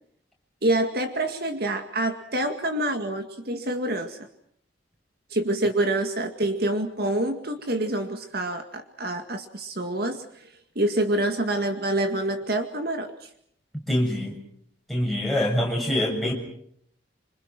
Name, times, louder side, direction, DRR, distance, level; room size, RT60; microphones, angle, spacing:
voice 1, 0.6-4.2 5.3-13.3, right 1 dB, 55° right, 6 dB, 2.1 m, -27 dB
voice 2, 13.9-14.4 14.9-16.3, left 1 dB, ahead, -1 dB, 7.1 m, -24 dB
26.5 x 26.0 x 6.1 m, 0.68 s
head